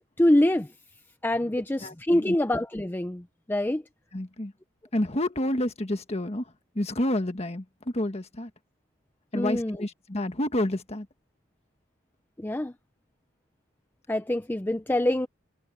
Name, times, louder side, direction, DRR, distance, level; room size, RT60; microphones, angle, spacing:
voice 1, 0.2-0.7 1.2-3.8 9.3-9.8 12.4-12.7 14.1-15.3, left 1 dB, 10° left, 0.5 m, -25 dB
voice 2, 1.8-2.3 4.1-4.5 4.9-6.4 6.7-7.6 7.9-8.5 9.3-11.1, left 1 dB, 30° left, 1.5 m, -29 dB
head